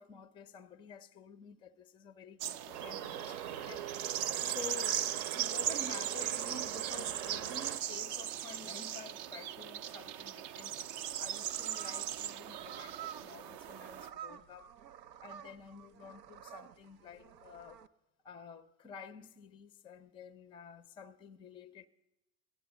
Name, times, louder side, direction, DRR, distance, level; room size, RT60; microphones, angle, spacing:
voice 1, 0.0-3.9 4.4-10.8 11.2-14.7 15.2-17.8 18.2-21.9, left 5 dB, 10° left, 0.4 m, -50 dB
sound 1, 2.4-14.1, right 11 dB, 40° right, 0.5 m, -38 dB
sound 2, 2.7-7.8, right 10 dB, 60° right, 0.9 m, -43 dB
sound 3, 10.9-17.9, right 10 dB, 90° right, 0.6 m, -50 dB
15.0 x 10.0 x 7.1 m
hypercardioid pair, 85°, 48 cm